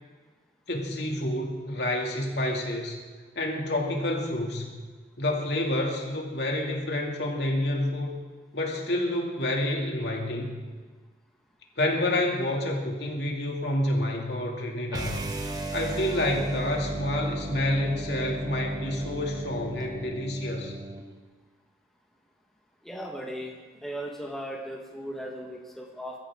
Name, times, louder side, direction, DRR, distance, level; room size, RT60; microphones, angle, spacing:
voice 1, 0.7-3.0 3.4-4.7 5.2-8.1 8.5-10.6 11.8-15.2 15.7-20.7, left 1 dB, 65° left, 0 dB, 2.6 m, -28 dB
sound 1, 14.9-21.1, right 2 dB, 20° right, 1.1 m, -35 dB
voice 2, 22.9-23.5 23.8-26.1, equal, ahead, -2 dB, 1.5 m, -37 dB
22.5 x 13.5 x 3.8 m, 1.4 s
head